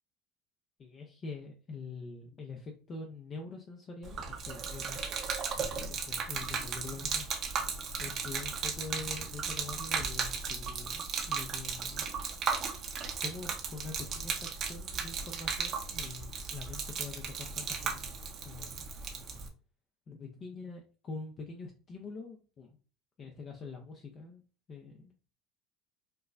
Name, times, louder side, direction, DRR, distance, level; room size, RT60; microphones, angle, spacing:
voice 1, 0.8-5.1 5.6-7.5 8.0-12.1 13.2-18.0 18.4-18.9 20.1-22.8 23.2-24.4 24.7-25.1, left 3 dB, 40° left, 2 dB, 0.6 m, -45 dB
Gurgling / Liquid, 4.0-19.5, right 5 dB, 45° right, 0.7 m, -36 dB
4.4 x 2.1 x 2.5 m, 0.36 s
supercardioid pair, 100°, 0 cm